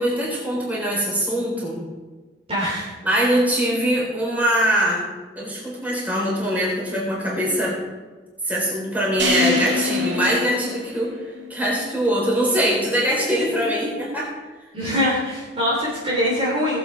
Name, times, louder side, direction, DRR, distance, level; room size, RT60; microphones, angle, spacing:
voice 1, 0.0-1.8 3.0-5.0 5.4-7.8 8.4-11.1 11.5-14.3, equal, 10° right, -5 dB, 4.3 m, -22 dB
voice 2, 2.5-2.9 14.7-16.8, equal, 30° right, -7 dB, 3.1 m, -23 dB
sound 1, 9.2-11.5, left 2 dB, 70° right, 2.4 m, -24 dB
19.0 x 8.2 x 4.6 m, 1.3 s
head